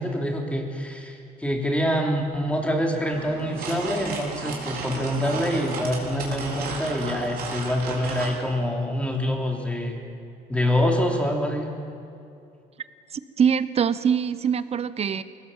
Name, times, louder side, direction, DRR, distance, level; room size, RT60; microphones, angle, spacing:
voice 1, 0.0-10.0 10.5-11.7, equal, 5° left, 1 dB, 3.2 m, -26 dB
sound 1, 3.1-8.4, right 4 dB, 65° right, 4.2 m, -34 dB
voice 2, 13.1-15.2, right 7 dB, 40° right, 15 dB, 0.9 m, -23 dB
21.5 x 18.0 x 7.4 m, 2.6 s
cardioid pair, 110°, 17 cm